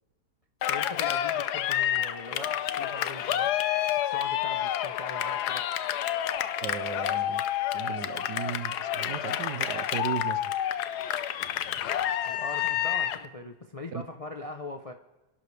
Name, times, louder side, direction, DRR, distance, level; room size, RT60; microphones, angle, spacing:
Cheering, 0.6-13.3, left 11 dB, 75° left, 1.2 m, -29 dB
voice 1, 0.7-3.5 4.0-5.7 12.2-14.9, left 2 dB, 45° left, 5 dB, 0.4 m, -41 dB
voice 2, 6.6-7.4 7.7-10.5 13.9-14.0, right 9 dB, 80° right, 13 dB, 1.4 m, -36 dB
29.5 x 11.5 x 3.3 m, 1.1 s
omnidirectional pair, 1.8 m